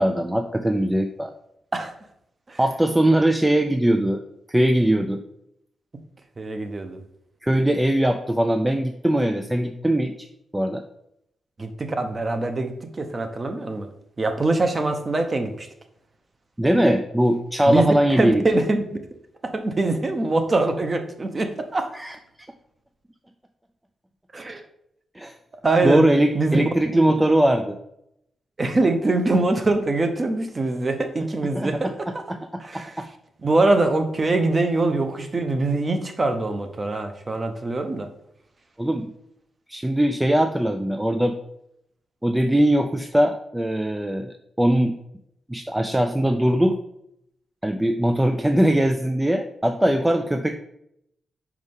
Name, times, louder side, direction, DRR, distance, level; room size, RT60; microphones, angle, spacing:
voice 1, 0.0-1.3 2.6-4.2 4.5-5.2 7.4-10.3 10.5-10.8 16.6-18.4 21.9-22.2 25.2-25.3 25.8-27.8 31.4-33.1 38.8-39.1 39.7-41.4 42.2-45.0 45.5-46.8 47.6-50.6, right 1 dB, 10° right, 6 dB, 0.4 m, -21 dB
voice 2, 6.4-7.0 11.6-13.9 14.2-15.7 17.7-18.8 19.5-21.9 24.3-24.6 25.6-26.1 26.3-26.6 26.9-27.1 28.6-32.1 32.6-32.9 33.4-38.1, right 2 dB, 25° right, 6 dB, 0.8 m, -23 dB
5.3 x 4.8 x 5.4 m, 0.77 s
wide cardioid pair, 145°, 0 cm